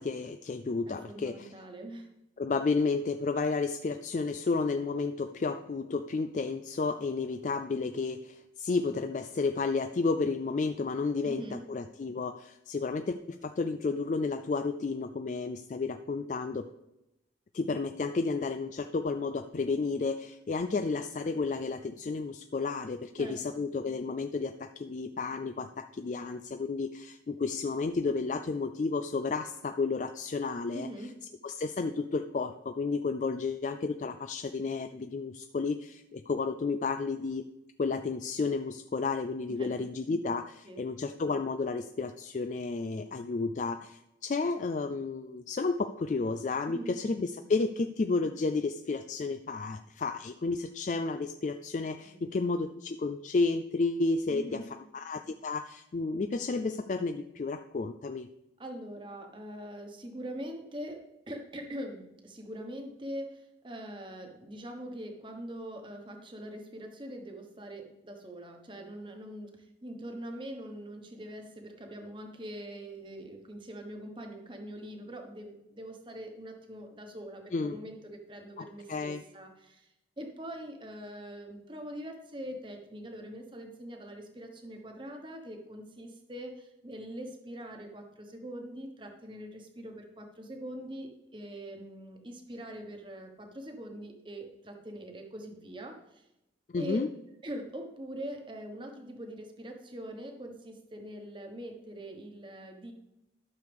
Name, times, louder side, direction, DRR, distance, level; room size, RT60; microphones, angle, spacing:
voice 1, 0.0-1.5 2.4-16.7 17.5-30.9 31.4-37.5 37.8-54.6 54.9-58.3 77.5-77.8 78.6-79.2 96.7-97.1, left 4 dB, 40° left, 8 dB, 0.3 m, -32 dB
voice 2, 0.9-2.1 11.2-11.6 23.2-23.6 30.7-31.2 39.5-39.8 40.6-40.8 46.7-46.9 52.0-52.2 54.3-54.6 58.6-96.3 96.7-97.0 97.4-102.9, equal, 25° right, 3 dB, 1.3 m, -43 dB
12.5 x 6.6 x 3.5 m, 0.89 s
head